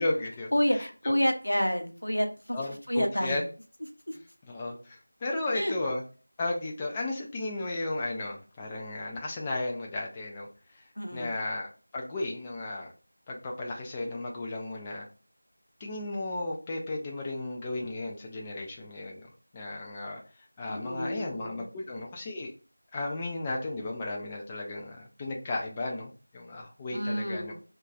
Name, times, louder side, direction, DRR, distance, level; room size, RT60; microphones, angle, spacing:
voice 1, 0.0-0.9 2.5-3.4 4.4-6.0 6.4-10.5 10.8-10.9 11.1-12.9 13.3-15.1 15.8-20.2 20.6-22.5 22.9-27.5, left 2 dB, 10° left, -1 dB, 0.3 m, -34 dB
voice 2, 0.5-2.6 2.9-3.4 4.1-4.2 5.5-5.8 11.0-11.4 20.7-22.0 26.9-27.5, equal, 75° left, 5 dB, 0.7 m, -29 dB
2.3 x 2.2 x 3.9 m, 0.35 s
figure-of-eight pair, 170°, 0 cm